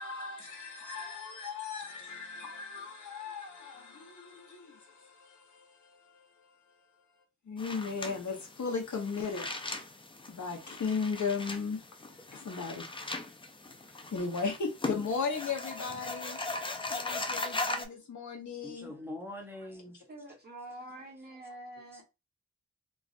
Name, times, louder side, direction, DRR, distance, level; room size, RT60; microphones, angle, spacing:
voice 1, 0.0-6.9 7.4-9.5 10.3-11.8 12.3-12.8 14.1-16.4 16.9-18.9, left 5 dB, 75° left, 1.0 m, -36 dB
sound 1, 7.6-17.8, left 2 dB, 20° left, 0.3 m, -39 dB
voice 2, 18.6-20.1, left 1 dB, 10° right, 0.7 m, -43 dB
voice 3, 20.1-22.0, right 1 dB, 35° right, 1.3 m, -46 dB
3.1 x 2.5 x 2.5 m
wide cardioid pair, 130°, 30 cm